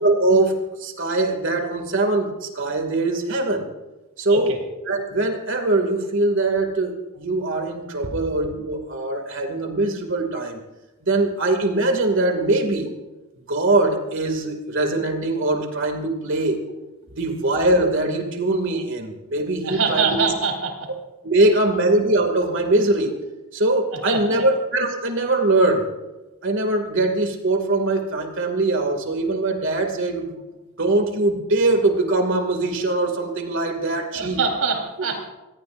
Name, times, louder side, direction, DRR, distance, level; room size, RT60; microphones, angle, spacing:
voice 1, 0.0-3.7 4.2-4.6 4.9-10.6 11.0-12.9 13.5-16.6 17.1-20.3 21.2-23.1 23.5-25.9 26.4-30.4 30.8-34.4, right 2 dB, 60° right, 4 dB, 2.5 m, -22 dB
voice 2, 19.6-20.7 21.4-21.5 23.9-24.5 34.1-35.3, right 4 dB, 75° right, 2 dB, 4.1 m, -24 dB
25.5 x 18.5 x 2.6 m, 1.1 s
head